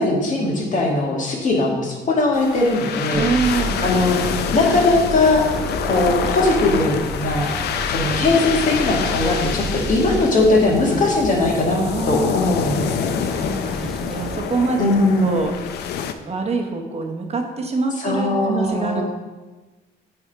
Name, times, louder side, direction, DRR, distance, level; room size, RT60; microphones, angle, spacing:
voice 1, 0.0-3.2 3.8-5.4 5.8-7.5 7.9-11.8 12.1-13.1 14.8-15.4 18.0-19.0, left 2 dB, 50° left, -1 dB, 1.7 m, -19 dB
sound 1, 2.3-16.1, left 8 dB, 80° left, 0.5 m, -27 dB
voice 2, 3.1-3.8 11.7-12.3 13.2-14.9 15.2-15.5 16.3-19.0, right 4 dB, 40° right, 3 dB, 0.9 m, -25 dB
sound 2, 3.1-10.2, right 4 dB, 75° right, 0.9 m, -32 dB
sound 3, 5.1-14.6, left 1 dB, ahead, 0.5 m, -35 dB
8.4 x 3.5 x 4.5 m, 1.2 s
cardioid pair, 105°, 17 cm